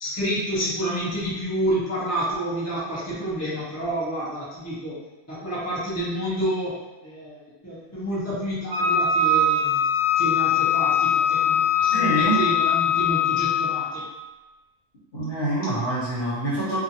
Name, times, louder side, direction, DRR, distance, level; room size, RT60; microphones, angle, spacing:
voice 1, 0.0-5.0 5.3-7.4 7.6-9.8 10.2-14.0, equal, 15° left, -9 dB, 0.5 m, -29 dB
Wind instrument woodwind instrument, 8.7-13.9, left 5 dB, 50° right, 0.9 m, -21 dB
voice 2, 11.9-12.4 15.1-16.8, right 1 dB, 45° left, -9 dB, 1.2 m, -25 dB
2.6 x 2.6 x 2.7 m, 1.1 s
omnidirectional pair, 1.4 m